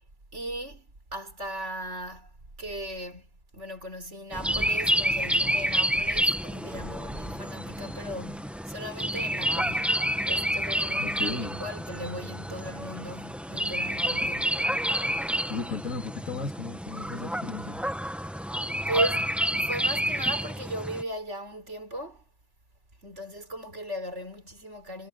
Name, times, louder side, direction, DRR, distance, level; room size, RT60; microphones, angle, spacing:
voice 1, 0.3-14.8 18.9-19.3 19.6-22.2 23.0-25.1, right 1 dB, 60° right, 4.9 m, -37 dB
sound 1, 4.3-21.0, equal, ahead, 1.2 m, -29 dB
voice 2, 11.0-11.6 15.5-17.8, left 4 dB, 85° left, 3.7 m, -35 dB
omnidirectional pair, 1.4 m